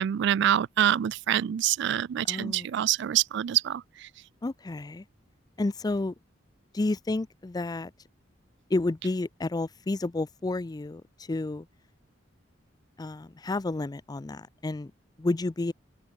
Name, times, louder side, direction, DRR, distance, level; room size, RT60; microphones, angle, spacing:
voice 1, 0.0-3.8, right 11 dB, 65° right, 0.3 m, -25 dB
voice 2, 2.2-2.7 4.4-5.0 5.6-6.1 6.7-7.9 8.7-11.0 11.3-11.7 13.0-14.9 15.2-15.7, left 2 dB, 20° left, 0.4 m, -30 dB
open air
head